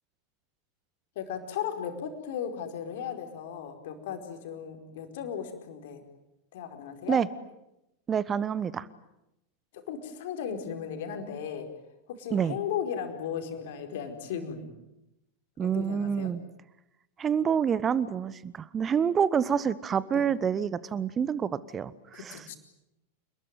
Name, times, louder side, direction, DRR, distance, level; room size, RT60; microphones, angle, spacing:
voice 1, 1.1-6.0 6.5-7.2 9.7-11.7 12.1-14.7 15.6-16.3 20.1-20.2 22.1-22.6, left 8 dB, 55° left, 5 dB, 4.8 m, -36 dB
voice 2, 8.1-8.9 12.3-12.6 15.6-16.4 17.2-22.5, right 7 dB, 20° right, 18 dB, 1.0 m, -27 dB
29.0 x 21.0 x 9.3 m, 0.89 s
figure-of-eight pair, 90°, 0 cm